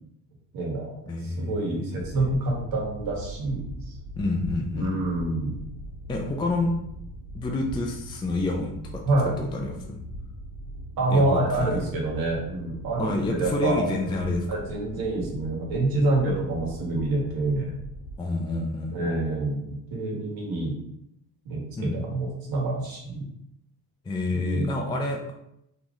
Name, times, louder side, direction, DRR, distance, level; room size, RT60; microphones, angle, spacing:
voice 1, 0.5-0.9 1.2-3.6 4.7-5.6 9.0-9.4 11.0-14.1 14.5-17.7 18.9-20.7 21.4-23.3 24.3-24.7, right 2 dB, 60° right, -2 dB, 1.6 m, -27 dB
voice 2, 1.1-2.3 4.2-4.9 6.1-6.7 7.3-10.0 11.1-11.2 11.6-11.8 13.0-14.5 18.2-19.2 21.8-22.1 24.0-25.3, left 2 dB, 15° left, 1 dB, 0.4 m, -29 dB
sound 1, 2.0-18.2, equal, 60° left, 1.6 m, -41 dB
3.9 x 3.0 x 3.7 m, 0.79 s
cardioid pair, 135°, 40 cm